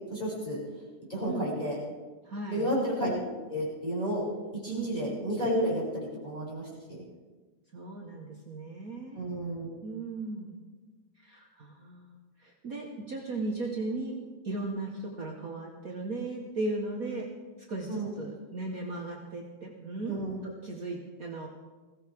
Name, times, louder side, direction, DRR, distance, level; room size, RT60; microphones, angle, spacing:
voice 1, 0.1-0.6 1.1-1.8 2.5-4.3 4.6-7.0 9.1-9.7 17.9-18.1 20.0-20.4, equal, 15° left, -6 dB, 7.0 m, -31 dB
voice 2, 2.2-2.7 4.7-5.0 7.7-9.2 9.8-10.6 11.2-14.2 14.4-17.3 17.7-21.5, right 2 dB, 50° right, -1 dB, 1.0 m, -37 dB
21.0 x 17.0 x 3.6 m, 1.3 s
omnidirectional pair, 3.4 m